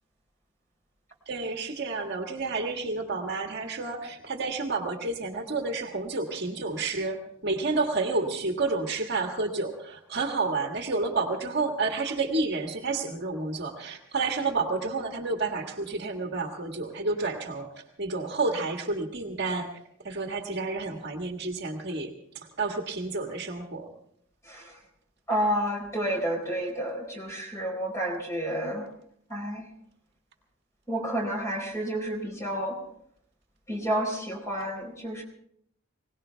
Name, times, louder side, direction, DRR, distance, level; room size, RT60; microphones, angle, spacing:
voice 1, 1.3-17.7 18.0-19.8 20.0-22.1 22.6-23.9, right 3 dB, 50° right, 3 dB, 1.7 m, -30 dB
voice 2, 25.3-28.8 29.3-29.6 30.9-32.8 33.7-35.2, right 1 dB, 15° left, 1 dB, 4.3 m, -30 dB
21.5 x 18.5 x 3.4 m, 0.68 s
head